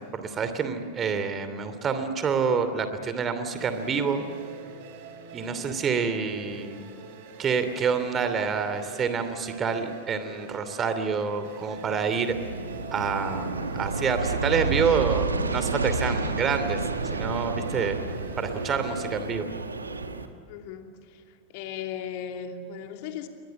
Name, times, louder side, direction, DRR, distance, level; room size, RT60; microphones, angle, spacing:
voice 1, 0.0-4.2 5.3-6.9 7.4-12.3 12.9-16.8 17.1-18.0 18.4-19.5, right 6 dB, 25° right, 10 dB, 2.8 m, -27 dB
sound 1, 3.6-19.3, right 3 dB, 50° right, 4.1 m, -45 dB
Aircraft, 12.2-20.3, right 3 dB, 75° right, 1.8 m, -30 dB
voice 2, 20.5-21.2 21.5-23.3, left 8 dB, 45° left, 5 dB, 2.8 m, -37 dB
30.0 x 23.0 x 7.7 m, 2.3 s
figure-of-eight pair, 90°, 0 cm